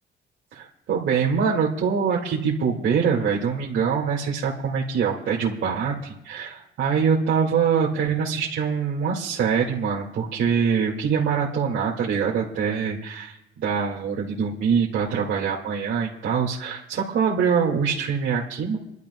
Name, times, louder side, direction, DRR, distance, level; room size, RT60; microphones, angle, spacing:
voice 1, 0.5-18.8, right 6 dB, 75° right, -5 dB, 2.2 m, -24 dB
29.0 x 12.0 x 2.3 m, 0.85 s
cardioid pair, 90°, 20 cm